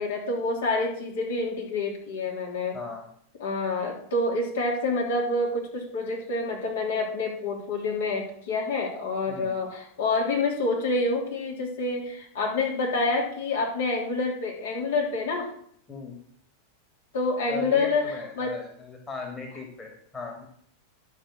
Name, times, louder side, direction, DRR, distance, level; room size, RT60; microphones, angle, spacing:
voice 1, 0.0-2.8 3.4-15.5 17.1-18.0 18.4-18.6, left 3 dB, 60° left, -1 dB, 3.3 m, -27 dB
voice 2, 2.7-3.1 9.3-9.5 15.9-16.2 17.5-20.5, left 4 dB, 15° left, 1 dB, 2.1 m, -38 dB
11.5 x 5.7 x 6.3 m, 0.66 s
figure-of-eight pair, 90°, 0 cm